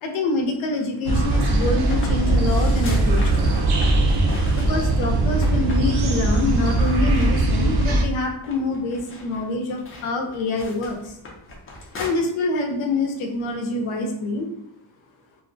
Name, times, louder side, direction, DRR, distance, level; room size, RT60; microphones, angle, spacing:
voice 1, 0.0-3.4 4.5-11.2 12.0-14.5, left 2 dB, 85° left, 3 dB, 0.7 m, -26 dB
sound 1, 1.1-8.0, right 2 dB, 55° right, 0.5 m, -20 dB
sound 2, 1.5-5.1 5.4-5.9 6.1-6.3 6.6-8.1 8.4-12.1, left 1 dB, 30° left, 0.4 m, -38 dB
2.5 x 2.0 x 2.5 m, 0.76 s
wide cardioid pair, 170°, 47 cm